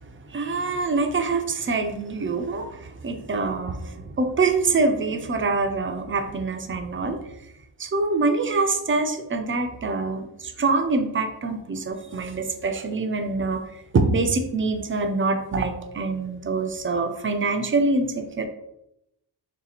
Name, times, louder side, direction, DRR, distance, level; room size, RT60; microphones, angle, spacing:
voice 1, 0.2-7.3 7.8-18.5, right 3 dB, 30° right, 6 dB, 0.4 m, -25 dB
3.2 x 2.8 x 4.0 m, 0.81 s
wide cardioid pair, 160°, 40 cm